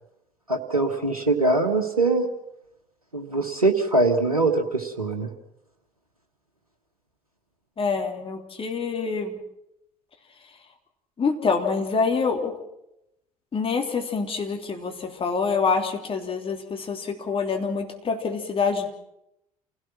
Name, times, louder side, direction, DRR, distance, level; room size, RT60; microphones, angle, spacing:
voice 1, 0.5-2.3 3.1-5.3, right 2 dB, 85° right, 4 dB, 1.4 m, -22 dB
voice 2, 7.8-9.4 11.2-12.6 13.5-18.9, left 5 dB, 30° left, 3 dB, 3.3 m, -26 dB
28.5 x 17.0 x 6.0 m, 0.82 s
figure-of-eight pair, 55°, 18 cm